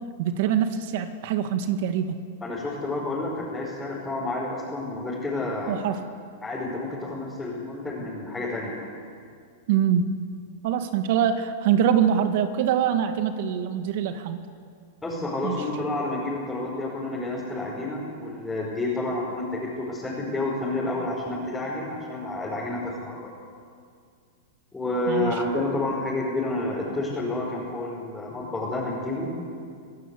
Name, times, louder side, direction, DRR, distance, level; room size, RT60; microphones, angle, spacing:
voice 1, 0.2-2.2 5.7-6.0 9.7-10.1 10.6-14.4 15.4-15.6 25.1-25.3, right 9 dB, 60° right, 8 dB, 2.0 m, -24 dB
voice 2, 2.4-5.8 6.4-8.7 15.0-23.2 24.7-29.3, left 2 dB, 10° left, -6 dB, 5.7 m, -29 dB
27.0 x 16.0 x 8.5 m, 2.2 s
hypercardioid pair, 130°, 0 cm